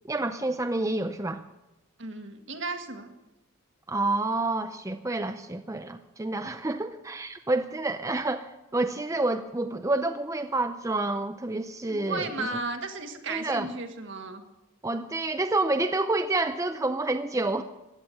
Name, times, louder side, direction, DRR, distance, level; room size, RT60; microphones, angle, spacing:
voice 1, 0.1-1.4 3.9-12.6 13.3-13.7 14.8-17.6, right 2 dB, 15° right, 8 dB, 0.5 m, -28 dB
voice 2, 2.0-3.2 11.8-14.4, right 3 dB, 60° right, 6 dB, 1.8 m, -34 dB
16.0 x 11.0 x 7.7 m, 0.99 s
head